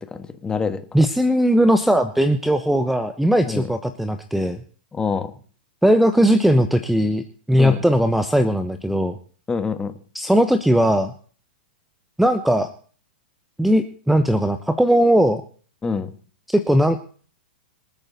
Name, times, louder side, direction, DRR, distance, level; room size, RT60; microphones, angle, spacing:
voice 1, 0.1-0.8 3.5-3.6 4.9-5.3 7.6-7.8 9.5-9.9 15.8-16.1, left 5 dB, 15° left, 9 dB, 1.6 m, -25 dB
voice 2, 0.9-4.6 5.8-9.2 10.1-11.1 12.2-12.7 13.6-15.4 16.5-17.0, equal, ahead, 10 dB, 1.0 m, -18 dB
26.5 x 9.1 x 4.2 m, 0.43 s
hypercardioid pair, 110°, 5 cm